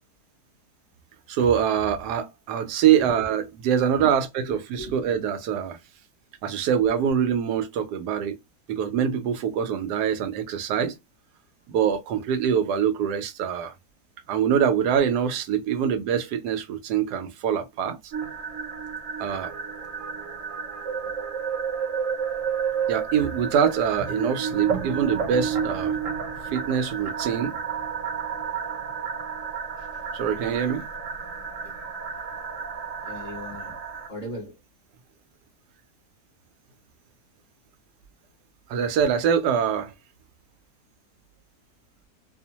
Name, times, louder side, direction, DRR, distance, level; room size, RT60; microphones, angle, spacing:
voice 1, 1.3-5.8 6.4-8.4 8.7-11.0 11.7-13.7 14.3-18.0 19.2-19.5 22.9-26.0 26.5-27.6 30.1-30.8 38.7-39.9, right 8 dB, 85° right, 1.2 m, -24 dB
voice 2, 2.9-3.4 4.8-4.9 21.0-21.1 29.8-30.0 31.4-31.9 33.0-34.6, left 1 dB, 35° left, 0.9 m, -39 dB
sound 1, 18.1-34.1, right 6 dB, 65° right, 0.9 m, -31 dB
2.9 x 2.0 x 2.8 m
omnidirectional pair, 1.7 m